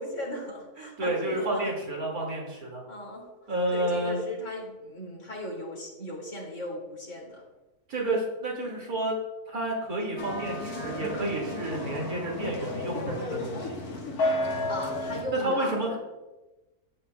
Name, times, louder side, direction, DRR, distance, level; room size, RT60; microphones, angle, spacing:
voice 1, 0.0-1.7 2.9-3.3 3.7-7.4 14.7-16.0, left 1 dB, 55° left, -3 dB, 2.8 m, -36 dB
voice 2, 0.8-2.8 3.5-4.2 7.9-9.1 9.5-13.7 15.4-16.0, right 1 dB, 75° right, -1 dB, 2.7 m, -30 dB
sound 1, 10.2-15.2, left 1 dB, 80° left, 1.8 m, -32 dB
13.5 x 8.5 x 2.2 m, 1.1 s
omnidirectional pair, 1.6 m